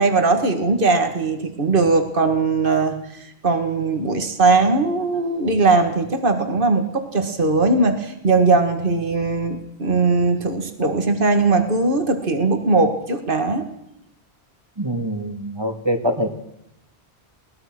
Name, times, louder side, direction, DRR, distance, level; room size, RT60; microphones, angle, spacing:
voice 1, 0.0-13.7, right 3 dB, 55° right, 6 dB, 2.2 m, -19 dB
voice 2, 14.8-16.3, equal, 25° right, 6 dB, 2.1 m, -24 dB
22.5 x 19.5 x 6.1 m, 0.80 s
omnidirectional pair, 1.1 m